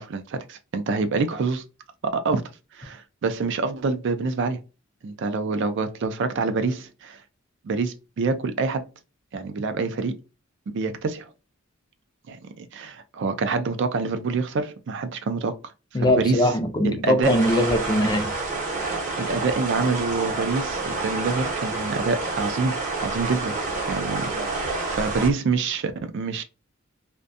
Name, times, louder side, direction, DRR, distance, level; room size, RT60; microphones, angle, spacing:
voice 1, 0.0-1.6 2.1-2.4 2.7-4.6 5.0-7.2 7.6-8.9 9.3-10.2 10.7-11.3 12.3-15.6 15.9-16.5 16.8-17.4 19.2-22.7 23.0-23.5 23.9-26.4, right 4 dB, 60° right, 0.4 m, -26 dB
voice 2, 15.9-18.3, left 1 dB, 20° left, 0.4 m, -21 dB
sound 1, 17.2-25.3, right 3 dB, 40° right, 0.7 m, -28 dB
2.5 x 2.1 x 2.5 m
head